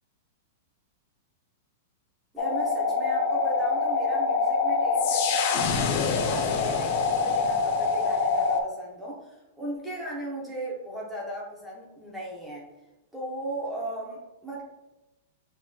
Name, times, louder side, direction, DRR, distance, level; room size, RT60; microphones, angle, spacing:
voice 1, 2.3-12.7 13.1-14.6, right 1 dB, 5° right, -5 dB, 0.7 m, -36 dB
sound 1, 2.4-8.6, left 4 dB, 40° left, 0.4 m, -25 dB
5.9 x 3.0 x 2.2 m, 1.0 s
supercardioid pair, 180°, 0 cm